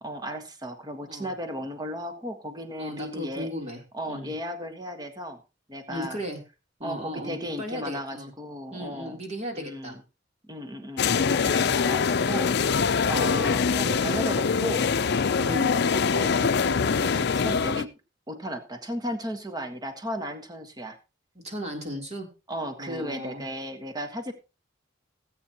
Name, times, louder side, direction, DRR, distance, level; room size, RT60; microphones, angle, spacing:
voice 1, 0.0-3.5 3.9-5.4 5.7-6.2 6.8-9.2 9.5-10.0 10.5-14.9 15.3-17.9 18.3-21.0 22.5-24.3, equal, 20° right, 7 dB, 1.4 m, -35 dB
voice 2, 2.8-3.8 4.1-4.3 5.9-6.4 6.8-8.3 8.7-10.0 15.4-15.8 21.4-22.3 22.8-23.4, equal, 35° right, 1 dB, 3.4 m, -36 dB
sound 1, 11.0-17.8, left 5 dB, 60° left, 0.5 m, -24 dB
18.5 x 8.7 x 3.0 m, 0.30 s
head